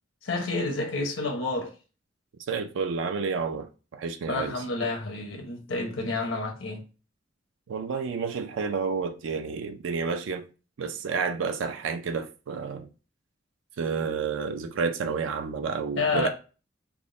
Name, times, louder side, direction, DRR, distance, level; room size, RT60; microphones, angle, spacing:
voice 1, 0.2-1.7 4.3-6.8 16.0-16.3, left 3 dB, 90° left, 0.9 m, -29 dB
voice 2, 2.5-4.6 7.7-10.5 10.8-12.9 13.8-16.3, right 5 dB, 70° right, 0.4 m, -30 dB
3.5 x 2.0 x 3.6 m
head